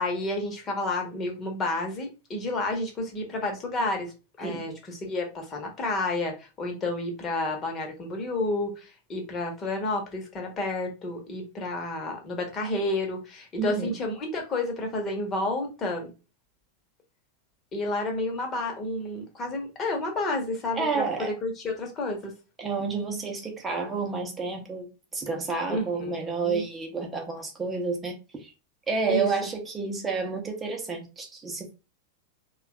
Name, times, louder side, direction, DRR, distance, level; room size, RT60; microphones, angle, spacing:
voice 1, 0.0-4.1 4.4-16.1 17.7-22.3 25.7-26.6 29.1-29.3, left 2 dB, 25° left, 1.1 m, -30 dB
voice 2, 13.6-13.9 20.7-21.4 22.6-28.5 28.9-31.7, right 4 dB, 15° right, 0.8 m, -30 dB
3.2 x 2.4 x 3.3 m
figure-of-eight pair, 90°, 0 cm